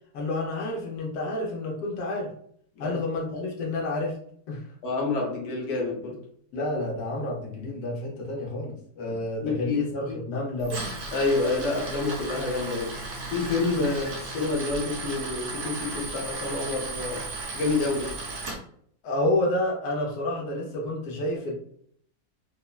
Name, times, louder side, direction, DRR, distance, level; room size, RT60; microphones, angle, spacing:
voice 1, 0.1-2.3 2.8-4.2 4.5-4.7 6.5-10.9 13.9-14.0 19.0-21.5, left 1 dB, 90° left, -1 dB, 1.3 m, -29 dB
voice 2, 4.8-6.2 9.1-9.8 10.1-10.2 11.1-13.0 13.3-17.2 17.5-18.2, left 3 dB, 60° left, -1 dB, 1.1 m, -28 dB
Tools, 10.6-18.6, right 3 dB, 60° right, 1.0 m, -35 dB
3.4 x 2.0 x 2.3 m, 0.63 s
omnidirectional pair, 1.6 m